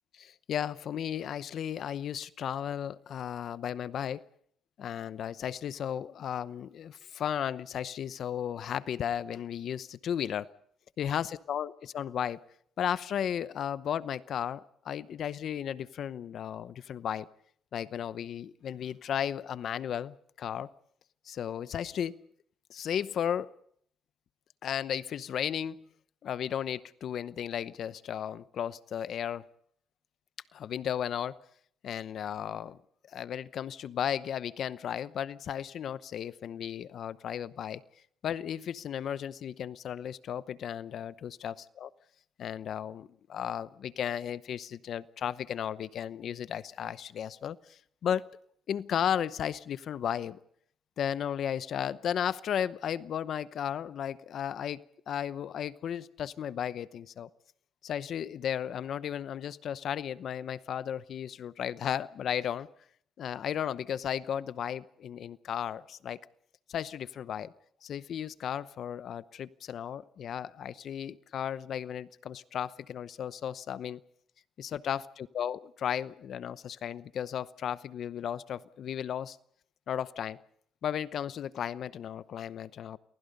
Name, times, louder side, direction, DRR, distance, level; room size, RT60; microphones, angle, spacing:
voice 1, 0.1-4.2 4.8-10.5 11.0-12.4 12.8-17.3 17.7-20.7 21.2-22.2 22.7-23.5 24.6-25.9 26.2-29.4 30.5-31.4 31.8-32.8 33.1-37.8 38.2-41.9 42.4-48.3 48.7-50.4 51.0-57.3 57.8-62.7 63.2-66.2 66.7-67.5 67.8-74.0 74.6-79.4 79.9-80.4 80.8-83.0, left 9 dB, 65° left, 16 dB, 0.8 m, -34 dB
29.0 x 20.0 x 5.4 m, 0.65 s
cardioid pair, 90°, 0 cm